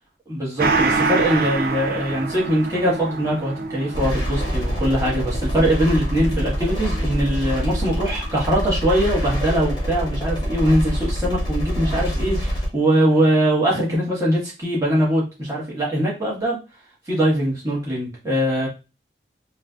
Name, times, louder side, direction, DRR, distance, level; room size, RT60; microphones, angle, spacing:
voice 1, 0.3-16.6 17.1-18.7, equal, 20° right, -6 dB, 1.5 m, -22 dB
Gong, 0.6-9.6 9.9-10.0, right 3 dB, 55° right, 0.5 m, -28 dB
sound 1, 3.9-12.7, equal, 25° left, 1.2 m, -25 dB
3.3 x 3.1 x 2.4 m, 0.29 s
head